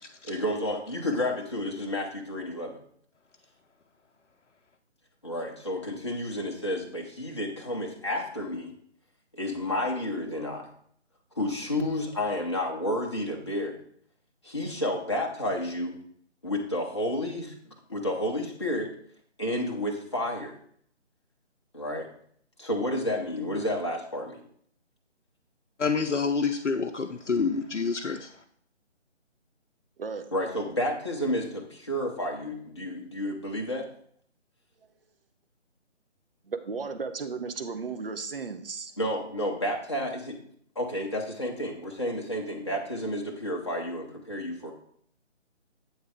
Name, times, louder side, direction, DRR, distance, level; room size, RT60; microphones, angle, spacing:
voice 1, 0.2-2.8 5.2-8.7 9.3-10.7 11.4-13.8 14.4-16.0 16.4-17.5 17.9-19.0 19.4-20.5 21.7-22.1 22.6-24.4 30.3-33.9 39.0-40.4 40.8-44.7, left 1 dB, 25° left, -1 dB, 0.6 m, -31 dB
voice 2, 25.8-28.3, left 5 dB, 75° left, 4 dB, 0.6 m, -27 dB
voice 3, 30.0-30.3 36.5-38.9, right 4 dB, 50° right, 8 dB, 0.7 m, -35 dB
8.0 x 3.3 x 4.7 m, 0.64 s
figure-of-eight pair, 150°, 36 cm